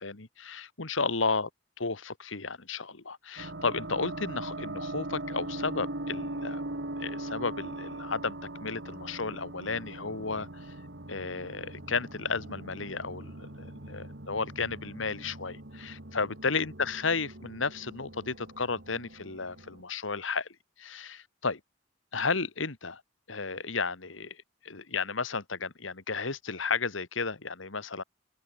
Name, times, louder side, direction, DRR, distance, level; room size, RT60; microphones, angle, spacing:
voice 1, 0.0-1.5 1.8-6.6 7.0-8.4 8.6-10.7 11.1-20.5 20.8-21.6 22.1-23.0 23.3-28.0, left 4 dB, 85° left, 2.0 m, -33 dB
sound 1, 3.4-19.8, right 1 dB, 65° right, 2.8 m, -41 dB
open air
head